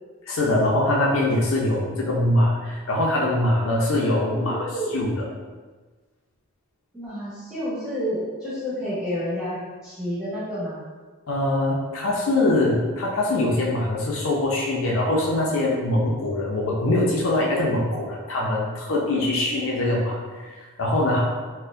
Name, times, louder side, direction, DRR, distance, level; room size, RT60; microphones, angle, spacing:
voice 1, 0.2-5.2 11.3-21.2, left 1 dB, 70° left, -3 dB, 0.6 m, -23 dB
voice 2, 4.3-5.0 6.9-10.8, equal, 5° right, -12 dB, 1.5 m, -30 dB
4.3 x 2.1 x 2.6 m, 1.3 s
head